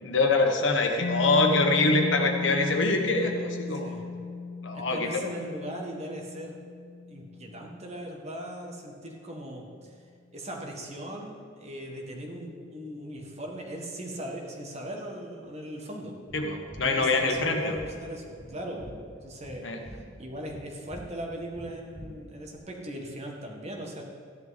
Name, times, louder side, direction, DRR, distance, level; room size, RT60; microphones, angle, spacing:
voice 1, 0.0-3.9 4.6-5.1 16.3-17.8 19.6-19.8, left 3 dB, 70° left, 3 dB, 1.4 m, -24 dB
Mallet percussion, 1.0-8.5, left 4 dB, 45° left, 0.4 m, -36 dB
voice 2, 3.7-4.0 4.7-6.6 7.1-10.0 10.3-16.1 16.8-18.9 19.2-24.0, right 1 dB, 35° right, 1 dB, 1.7 m, -39 dB
sound 1, 16.3-22.6, equal, 20° left, 2.4 m, -47 dB
13.5 x 10.5 x 4.2 m, 2.2 s
head